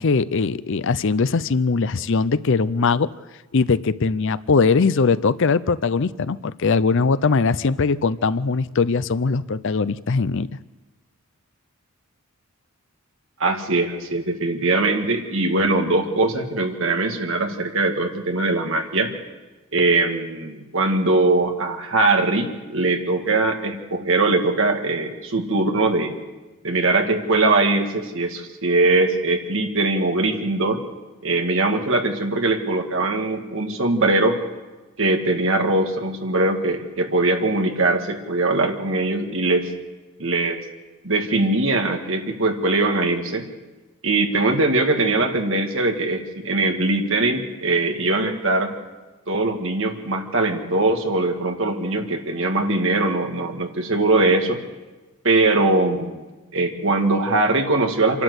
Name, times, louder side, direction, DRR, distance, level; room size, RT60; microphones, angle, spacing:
voice 1, 0.0-3.1 3.5-10.5, left 4 dB, 55° left, 16 dB, 0.5 m, -20 dB
voice 2, 13.4-19.1 19.7-26.1 26.6-30.8 31.2-34.4 35.0-39.7 40.2-40.6 41.0-43.5 44.0-48.7 49.3-54.6 55.2-56.2 56.5-58.2, right 2 dB, 60° right, 4 dB, 2.1 m, -21 dB
26.5 x 12.0 x 8.1 m, 1.2 s
head